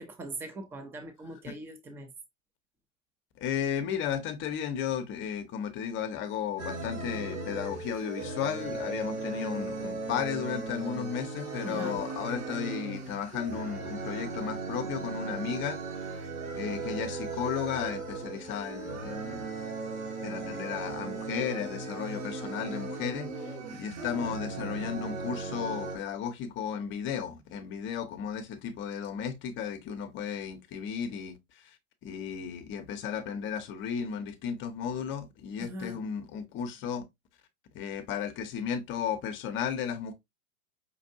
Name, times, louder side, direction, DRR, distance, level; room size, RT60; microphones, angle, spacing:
voice 1, 0.0-2.1 11.6-12.0 35.6-36.0, right 1 dB, 5° right, 0.4 m, -41 dB
voice 2, 3.4-16.3 16.5-19.4 20.2-31.8 32.0-37.0 37.7-40.1, left 8 dB, 30° left, 0.8 m, -34 dB
sound 1, 6.6-26.0, right 3 dB, 70° right, 1.6 m, -37 dB
5.4 x 2.5 x 2.5 m
figure-of-eight pair, 100°, 42 cm